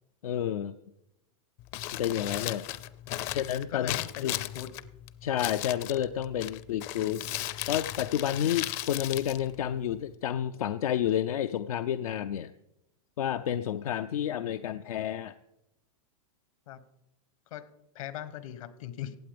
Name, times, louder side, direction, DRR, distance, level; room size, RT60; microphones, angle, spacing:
voice 1, 0.2-0.8 1.9-2.7 3.3-4.3 5.2-12.5 13.2-15.3, left 10 dB, 90° left, 9 dB, 0.6 m, -30 dB
Crumpling crinkling, 1.6-10.2, left 14 dB, 40° left, 0.5 m, -37 dB
voice 2, 3.7-4.7 16.7-16.8 17.5-17.7 17.9-19.2, left 11 dB, 70° left, 14 dB, 1.2 m, -40 dB
16.0 x 8.6 x 5.2 m, 0.86 s
supercardioid pair, 145°, 18 cm